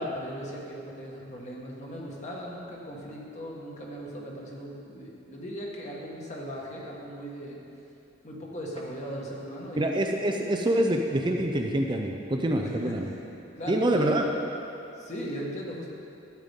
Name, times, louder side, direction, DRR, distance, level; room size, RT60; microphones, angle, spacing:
voice 1, 0.0-7.6 8.2-9.9 12.6-14.3 15.0-15.9, equal, 40° left, -3 dB, 1.6 m, -38 dB
voice 2, 9.8-13.1 13.7-14.3, right 1 dB, 25° right, 2 dB, 0.5 m, -26 dB
12.5 x 9.2 x 3.6 m, 2.7 s
head